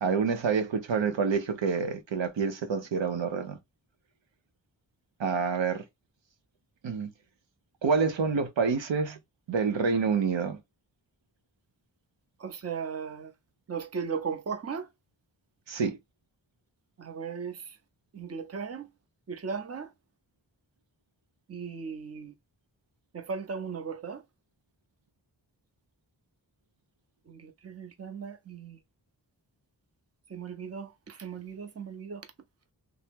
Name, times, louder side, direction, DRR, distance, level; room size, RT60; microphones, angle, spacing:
voice 1, 0.0-3.6 5.2-5.8 6.8-7.1 7.8-9.2 9.5-10.6 15.7-16.0, right 5 dB, 90° right, 0.7 m, -27 dB
voice 2, 12.4-13.3 13.7-14.9 17.0-17.8 18.1-18.9 19.3-19.9 21.5-22.3 23.1-24.2 27.3-28.8 30.3-32.2, right 6 dB, 35° right, 0.6 m, -37 dB
2.8 x 2.0 x 3.4 m
wide cardioid pair, 60°, 43 cm